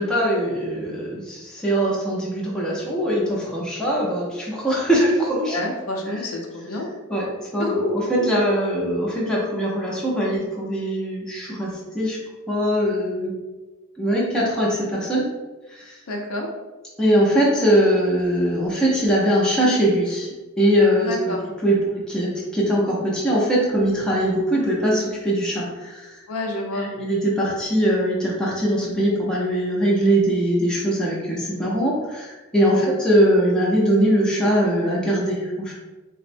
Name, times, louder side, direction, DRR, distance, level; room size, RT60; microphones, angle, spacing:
voice 1, 0.0-5.6 7.1-7.3 7.5-12.2 12.5-13.3 14.0-15.3 15.7-15.9 17.0-20.3 20.6-21.4 21.6-26.2 26.8-35.7, equal, 5° left, -5 dB, 0.5 m, -21 dB
voice 2, 5.5-6.9 7.6-8.3 16.1-16.5 21.0-21.4 26.3-26.9 32.6-33.0, left 1 dB, 75° left, 1 dB, 0.5 m, -28 dB
3.6 x 2.1 x 2.5 m, 1.2 s
head